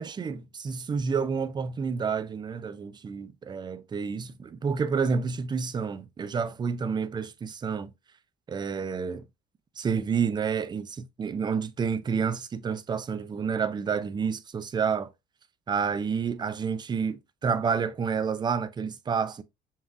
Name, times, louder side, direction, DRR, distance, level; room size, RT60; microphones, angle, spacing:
voice 1, 0.0-7.9 8.5-9.2 9.8-15.1 15.7-19.4, right 6 dB, 25° right, 0.4 m, -29 dB
7.1 x 2.4 x 2.5 m
cardioid pair, 110°, 17 cm